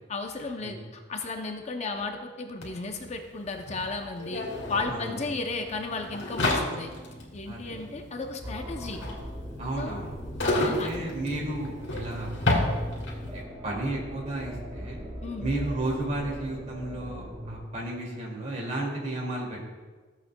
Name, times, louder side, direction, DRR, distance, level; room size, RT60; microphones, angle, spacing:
voice 1, 0.1-4.4 4.7-6.9 7.3-9.0 9.8-10.0 10.4-10.9 15.2-15.5, left 3 dB, 35° left, 4 dB, 0.6 m, -34 dB
sound 1, 2.6-2.7 2.9-13.4, left 1 dB, 85° left, 2.5 m, -31 dB
sound 2, 4.3-17.3, left 1 dB, 55° left, 2.5 m, -51 dB
sound 3, 8.4-17.6, equal, 25° right, 1.4 m, -39 dB
voice 2, 9.6-10.1 10.6-12.3 13.3-15.0 15.4-19.8, right 1 dB, 40° right, -2 dB, 2.3 m, -33 dB
14.5 x 8.1 x 2.2 m, 1.4 s
head